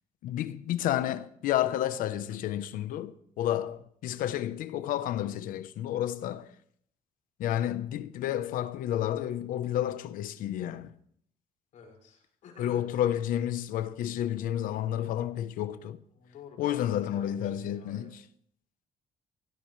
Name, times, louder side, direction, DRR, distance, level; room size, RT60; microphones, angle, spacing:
voice 1, 0.2-6.5 7.4-10.9 12.6-16.0 16.6-18.2, left 11 dB, 85° left, 0.9 m, -31 dB
voice 2, 11.7-12.8 16.2-18.1, left 5 dB, 60° left, 5.8 m, -51 dB
24.0 x 17.0 x 3.3 m
cardioid pair, 170°, 14 cm